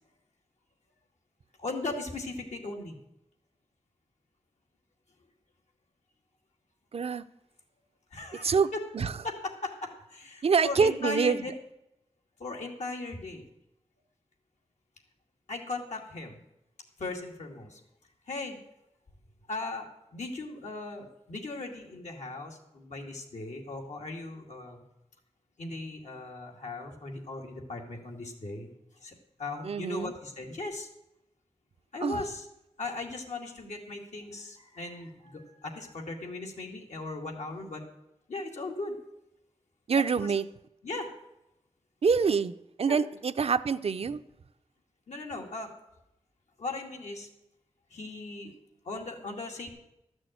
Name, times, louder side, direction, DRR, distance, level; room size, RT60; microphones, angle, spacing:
voice 1, 1.6-3.0 8.1-8.9 9.2-11.5 12.4-13.4 15.5-16.4 17.0-17.8 18.3-18.6 19.5-19.9 20.1-24.8 25.6-28.7 29.0-30.9 31.9-32.5 32.8-37.8 38.3-39.0 39.9-40.3 40.8-41.1 42.9-43.0 45.1-45.8 46.6-47.3 47.9-48.5 48.8-49.7, left 2 dB, 85° left, 2.3 m, -38 dB
voice 2, 6.9-7.2 8.4-9.1 10.4-11.4 29.6-30.1 32.0-32.2 39.9-40.5 42.0-42.5 42.8-44.2, right 5 dB, 60° right, 0.5 m, -26 dB
13.0 x 6.3 x 9.1 m
wide cardioid pair, 110°, 12 cm